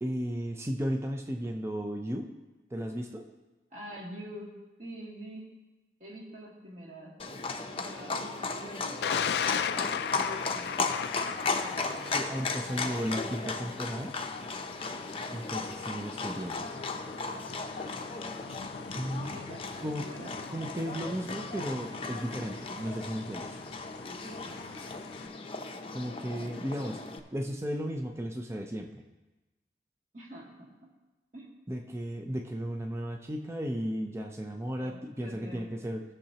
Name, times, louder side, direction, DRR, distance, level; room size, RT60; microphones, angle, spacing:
voice 1, 0.0-2.3 2.7-3.3 12.1-14.2 15.3-16.7 18.9-19.4 19.8-20.0 20.5-23.6 25.9-27.0 27.3-29.0 31.7-36.0, equal, 15° right, 3 dB, 0.6 m, -35 dB
voice 2, 3.7-4.5 4.8-5.4 6.0-7.1 7.7-10.8 11.4-12.1 19.2-19.7 20.0-20.3 24.2-24.6 30.1-30.4 31.3-31.5 34.7-35.9, equal, 45° right, -4 dB, 2.6 m, -46 dB
Livestock farm animals working animals, 7.2-27.2, left 3 dB, 30° left, 0.7 m, -36 dB
Thunder, 9.0-25.3, left 8 dB, 65° left, 0.3 m, -39 dB
18.5 x 6.5 x 2.9 m, 1.1 s
head